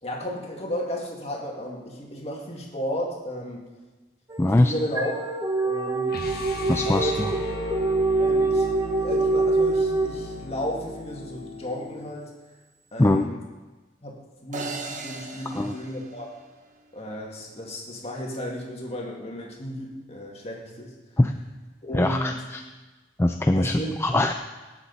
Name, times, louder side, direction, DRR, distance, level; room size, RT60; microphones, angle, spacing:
voice 1, 0.0-3.7 4.6-5.1 5.6-6.2 6.9-7.2 8.2-8.7 9.0-12.3 12.9-13.4 14.0-16.3 16.9-20.9 21.8-22.4 23.5-23.9, equal, 35° left, -1 dB, 2.3 m, -33 dB
sound 1, 4.3-10.7, right 2 dB, 20° right, 0.9 m, -25 dB
voice 2, 4.4-4.7 6.7-7.3 13.0-13.3 15.5-15.8 21.2-21.3 21.9-22.6 23.2-24.3, left 1 dB, 15° left, 6 dB, 0.4 m, -22 dB
sound 2, 6.1-12.1, left 2 dB, 60° left, 1.1 m, -37 dB
sound 3, 14.5-16.9, right 3 dB, 45° right, 1.2 m, -38 dB
18.0 x 7.2 x 4.1 m, 1.2 s
head